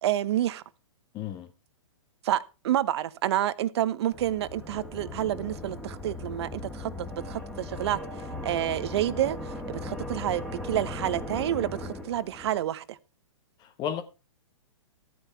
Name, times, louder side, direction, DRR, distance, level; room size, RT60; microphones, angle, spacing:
voice 1, 0.0-0.6 2.2-8.0 8.4-13.0, right 12 dB, 55° right, 1.0 m, -29 dB
voice 2, 1.1-1.5 13.6-14.0, left 9 dB, 25° left, 0.9 m, -33 dB
sound 1, 4.1-12.6, left 2 dB, 5° left, 2.4 m, -38 dB
14.0 x 9.4 x 4.6 m
hypercardioid pair, 125°, 17 cm